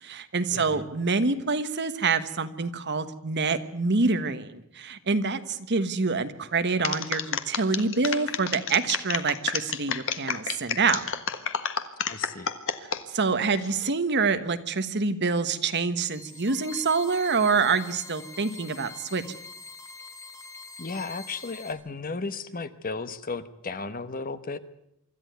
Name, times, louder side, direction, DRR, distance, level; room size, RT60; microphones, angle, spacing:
voice 1, 0.0-11.0 13.1-19.4, right 4 dB, 50° right, 10 dB, 1.3 m, -26 dB
voice 2, 0.5-0.9 12.1-12.5 20.8-24.6, left 4 dB, 40° left, 12 dB, 1.0 m, -34 dB
sound 1, 6.8-13.0 13.5-13.9, left 7 dB, 60° left, 1.5 m, -30 dB
sound 2, 16.0-21.7, left 4 dB, 15° left, 2.4 m, -44 dB
25.0 x 13.5 x 9.4 m, 0.81 s
head